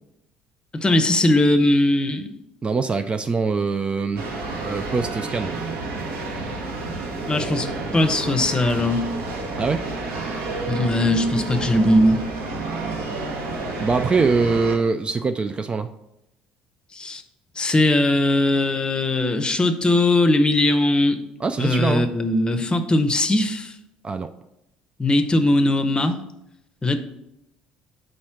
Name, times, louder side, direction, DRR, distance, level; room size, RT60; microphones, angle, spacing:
voice 1, 0.7-2.3 7.3-7.7 7.9-9.0 10.7-12.2 16.9-17.2 17.6-21.2 21.6-23.7 25.0-26.2 26.8-27.0, left 1 dB, 20° left, 8 dB, 0.7 m, -19 dB
voice 2, 2.6-4.2 4.6-5.5 9.6-9.8 13.8-15.9 21.4-22.1 24.0-24.3, right 4 dB, 25° right, 8 dB, 0.4 m, -23 dB
sound 1, 4.2-14.8, right 3 dB, 60° right, 1.0 m, -30 dB
5.3 x 4.3 x 5.9 m, 0.84 s
figure-of-eight pair, 55°, 4 cm